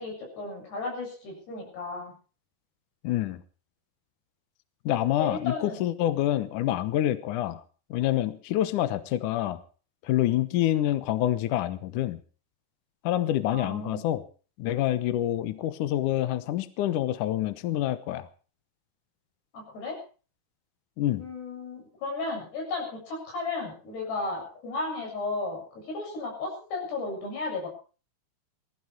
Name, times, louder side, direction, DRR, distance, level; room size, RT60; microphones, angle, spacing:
voice 1, 0.0-2.1 5.2-5.8 13.5-14.0 19.5-20.0 21.2-27.7, left 3 dB, 85° left, 1 dB, 9.7 m, -34 dB
voice 2, 3.0-3.4 4.9-7.6 7.9-9.6 10.0-12.2 13.0-14.2 14.6-18.3 21.0-21.2, left 13 dB, 70° left, 13 dB, 2.1 m, -27 dB
19.0 x 15.0 x 4.7 m, 0.38 s
omnidirectional pair, 4.6 m